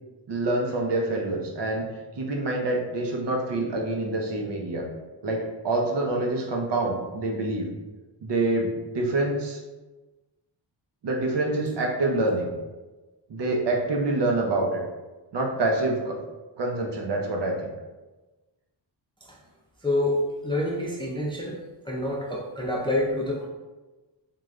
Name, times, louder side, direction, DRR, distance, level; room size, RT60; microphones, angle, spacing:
voice 1, 0.3-1.9 2.1-4.9 5.2-7.7 8.2-9.6 11.0-12.5 13.3-14.8 15.3-16.2 16.6-17.5, right 2 dB, 65° right, 1 dB, 0.7 m, -26 dB
voice 2, 19.8-21.6 21.9-23.5, left 1 dB, 10° left, -3 dB, 0.3 m, -27 dB
3.7 x 2.4 x 3.1 m, 1.2 s
wide cardioid pair, 135°, 46 cm